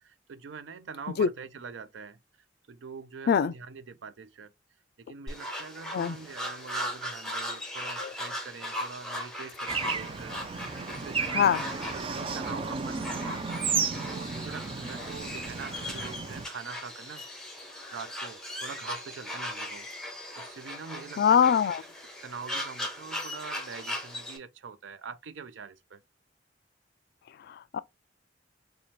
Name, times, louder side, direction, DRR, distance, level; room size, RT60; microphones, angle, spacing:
voice 1, 0.3-2.2 2.7-4.5 5.0-17.2 17.9-21.7 22.2-26.0, right 5 dB, 85° right, 0.5 m, -44 dB
sound 1, 5.3-24.4, equal, 5° left, 1.0 m, -38 dB
Bird / Traffic noise roadway noise, 9.7-16.5, right 5 dB, 30° right, 0.4 m, -33 dB
voice 2, 21.2-21.8 27.5-27.8, left 7 dB, 60° left, 0.3 m, -23 dB
4.1 x 2.2 x 3.0 m
head